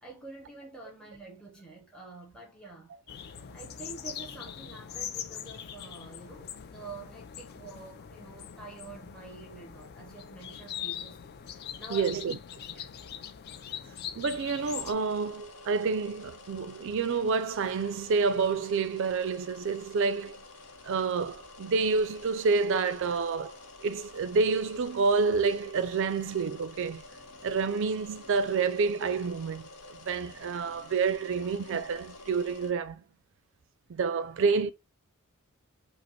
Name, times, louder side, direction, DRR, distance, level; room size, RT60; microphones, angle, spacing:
voice 1, 0.0-2.9 3.3-12.2 12.7-12.9, right 3 dB, 5° left, 0.7 m, -47 dB
sound 1, 3.1-14.9, left 9 dB, 45° left, 0.3 m, -42 dB
voice 2, 11.9-12.4 14.2-20.4 20.8-27.0 27.4-29.7 30.0-33.0 33.9-34.7, right 4 dB, 60° right, 0.4 m, -28 dB
sound 2, 14.6-32.7, left 2 dB, 85° left, 0.7 m, -49 dB
5.0 x 2.0 x 2.9 m
head